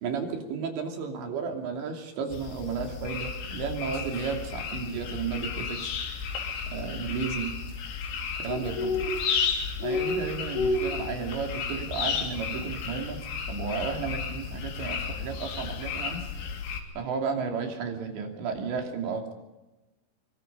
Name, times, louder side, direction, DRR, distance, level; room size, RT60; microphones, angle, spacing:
voice 1, 0.0-5.8 6.7-7.5 8.4-9.0 9.8-13.2 13.5-16.2 17.0-19.3, right 5 dB, 65° right, 3 dB, 4.9 m, -33 dB
sound 1, 2.3-16.8, left 5 dB, 85° left, 5.5 m, -32 dB
24.5 x 24.5 x 5.4 m, 1.1 s
omnidirectional pair, 5.8 m